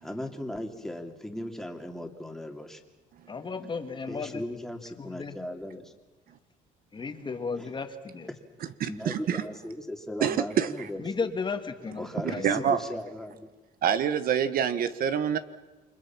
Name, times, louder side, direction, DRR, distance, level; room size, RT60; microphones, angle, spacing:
voice 1, 0.0-2.8 4.1-5.9 7.6-7.7 8.3-11.3 12.0-13.5, left 1 dB, 5° left, 3 dB, 2.8 m, -38 dB
voice 2, 3.3-4.4 5.0-5.4 6.9-8.3 11.0-12.7, left 4 dB, 25° left, 7 dB, 2.1 m, -34 dB
voice 3, 8.8-9.4 10.2-10.9 12.4-12.8 13.8-15.4, right 8 dB, 60° right, 12 dB, 1.2 m, -26 dB
29.5 x 24.5 x 6.0 m, 1.2 s
cardioid pair, 110°, 17 cm